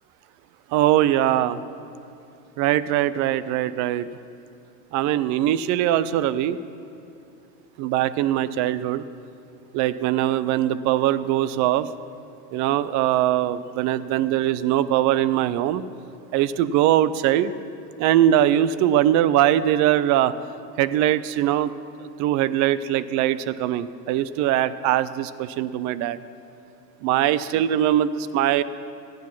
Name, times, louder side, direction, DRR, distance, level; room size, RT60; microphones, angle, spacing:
voice 1, 0.7-1.6 2.6-4.1 4.9-6.6 7.8-9.0 9.7-11.9 12.5-15.9 16.3-17.5 18.0-20.3 20.8-21.7 22.2-26.2 27.0-28.6, right 12 dB, 40° right, 16 dB, 0.4 m, -21 dB
14.0 x 9.3 x 5.8 m, 2.8 s
supercardioid pair, 115°, 50 cm